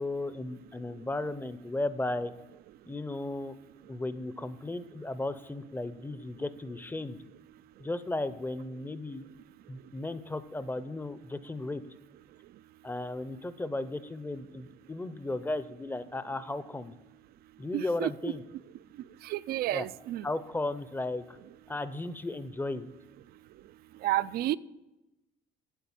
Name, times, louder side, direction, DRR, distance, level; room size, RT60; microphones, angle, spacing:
voice 1, 0.0-2.3 2.8-3.5 3.9-7.2 7.8-9.3 9.7-11.8 12.8-16.9 17.6-18.4 19.7-19.9 20.2-21.4 21.7-22.9, left 2 dB, 10° left, 13 dB, 0.6 m, -35 dB
voice 2, 17.7-18.3 19.2-20.3 24.0-24.6, right 14 dB, 65° right, 18 dB, 0.4 m, -31 dB
9.1 x 7.8 x 7.2 m, 1.0 s
cardioid pair, 110°, 17 cm